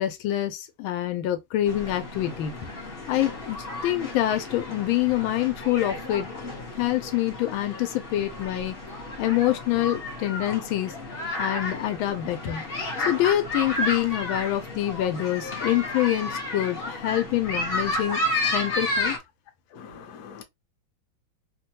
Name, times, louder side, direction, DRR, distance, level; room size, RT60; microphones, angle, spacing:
voice 1, 0.0-2.5 3.1-6.3 6.8-8.8 9.2-10.9 11.4-12.6 13.1-18.2 18.5-19.1, left 13 dB, 80° left, 1.4 m, -26 dB
sound 1, 1.7-19.2, left 1 dB, 45° left, 0.8 m, -32 dB
voice 2, 19.7-20.4, left 6 dB, 65° left, 1.1 m, -43 dB
3.3 x 2.2 x 2.7 m
omnidirectional pair, 2.2 m